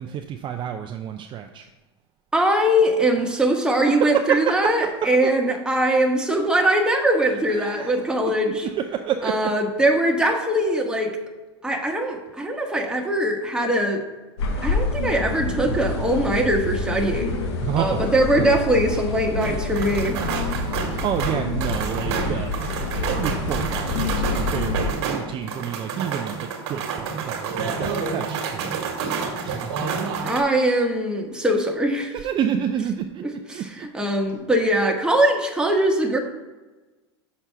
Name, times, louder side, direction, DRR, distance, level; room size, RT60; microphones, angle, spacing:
voice 1, 0.0-1.7 3.7-4.7 7.5-8.0 8.4-8.5 8.9-9.5 17.6-18.1 20.5-22.5 23.1-29.7 32.2-33.2 33.5-33.9, right 9 dB, 35° right, 4 dB, 0.5 m, -29 dB
voice 2, 2.3-8.7 9.2-11.2 11.6-14.0 14.6-17.4 17.8-20.2 30.2-32.1 33.2-36.2, right 1 dB, 5° right, 1 dB, 1.2 m, -21 dB
sound 1, 14.4-24.9, left 3 dB, 75° left, 1.1 m, -27 dB
sound 2, 19.4-30.4, right 5 dB, 65° right, 1.5 m, -29 dB
6.1 x 4.4 x 5.6 m, 1.2 s
hypercardioid pair, 105°, 14 cm